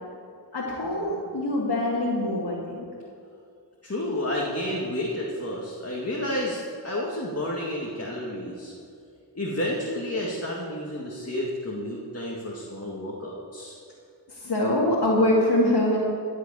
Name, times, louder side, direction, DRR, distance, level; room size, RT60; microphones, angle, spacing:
voice 1, 0.5-2.8 14.3-16.0, left 1 dB, 65° left, -7 dB, 2.5 m, -24 dB
voice 2, 3.8-6.6 6.8-8.7 9.3-13.8, left 1 dB, 35° left, -3 dB, 2.1 m, -30 dB
15.5 x 6.6 x 8.2 m, 2.5 s
wide cardioid pair, 55°, 42 cm